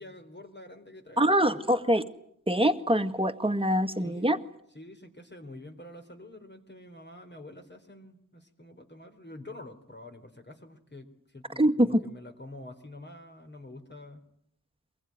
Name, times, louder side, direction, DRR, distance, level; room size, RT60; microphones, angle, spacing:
voice 1, 0.0-1.6 4.0-4.4 4.7-14.2, left 1 dB, 35° left, 5 dB, 3.6 m, -47 dB
voice 2, 1.2-2.0 2.5-4.4 11.6-12.0, equal, 15° right, 7 dB, 1.9 m, -24 dB
24.5 x 21.5 x 9.6 m, 0.70 s
wide cardioid pair, 95°, 32 cm